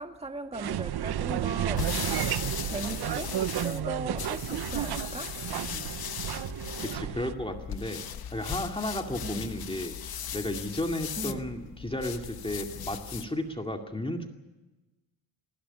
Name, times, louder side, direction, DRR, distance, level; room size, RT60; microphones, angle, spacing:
voice 1, 0.0-2.2 2.6-3.3 3.6-5.3 5.6-5.9 9.2-9.5 11.2-11.5, right 2 dB, 15° right, 2.0 m, -38 dB
sound 1, 0.5-7.3, right 11 dB, 55° right, 0.8 m, -32 dB
sound 2, 1.4-13.4, left 9 dB, 50° left, 1.1 m, -38 dB
voice 2, 6.8-8.0 8.3-14.3, left 1 dB, 10° left, 2.2 m, -33 dB
19.5 x 16.5 x 9.9 m
cardioid pair, 100°, 46 cm